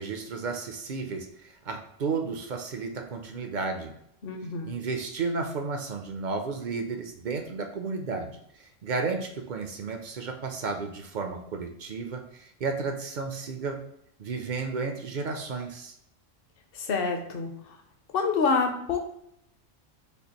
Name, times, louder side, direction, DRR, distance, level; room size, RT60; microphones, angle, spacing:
voice 1, 0.0-3.9 4.7-8.4 8.8-13.8 14.2-15.9, right 4 dB, 55° right, 5 dB, 0.5 m, -33 dB
voice 2, 4.2-4.7 16.7-17.8 18.1-19.0, left 4 dB, 55° left, 4 dB, 0.8 m, -27 dB
6.7 x 2.4 x 2.9 m, 0.74 s
omnidirectional pair, 1.3 m